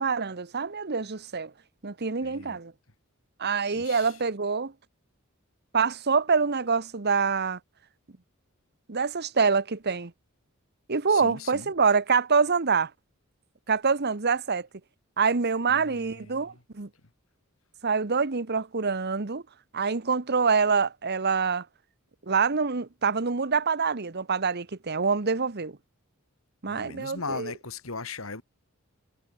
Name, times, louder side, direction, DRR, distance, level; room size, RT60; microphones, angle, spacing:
voice 1, 0.0-1.5 1.8-2.7 3.4-4.7 5.7-7.6 8.9-10.1 10.9-12.9 13.7-14.7 15.2-16.9 17.8-19.4 19.7-21.7 22.3-25.8 26.6-27.5, right 5 dB, 50° right, 1.2 m, -25 dB
voice 2, 2.2-2.6 3.7-4.2 11.1-11.7 15.7-16.6 26.7-28.4, left 4 dB, 70° left, 2.5 m, -39 dB
head